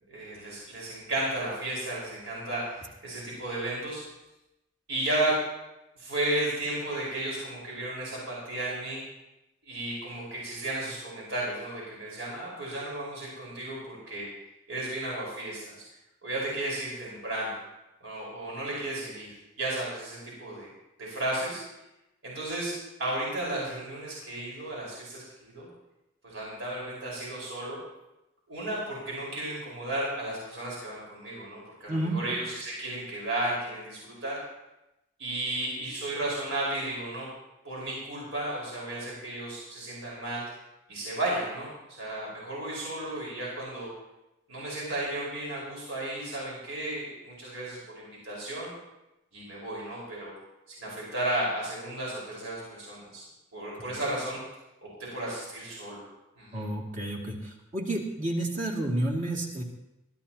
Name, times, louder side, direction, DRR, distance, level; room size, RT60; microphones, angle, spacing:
voice 1, 0.1-4.0 4.9-5.4 6.0-9.0 9.6-14.3 14.7-15.7 16.2-17.6 18.0-20.7 21.0-21.6 22.2-22.7 23.0-25.7 26.2-27.8 28.5-34.4 35.2-37.3 37.6-40.5 40.9-41.7 42.0-43.9 44.5-48.7 49.3-50.3 50.7-53.2 53.5-54.4 54.8-56.0 56.4-56.6, right 1 dB, 65° right, -5 dB, 5.0 m, -34 dB
voice 2, 31.9-32.2 53.9-54.0 56.5-59.6, right 1 dB, 40° right, -1 dB, 2.5 m, -30 dB
23.0 x 13.0 x 3.0 m, 0.94 s
head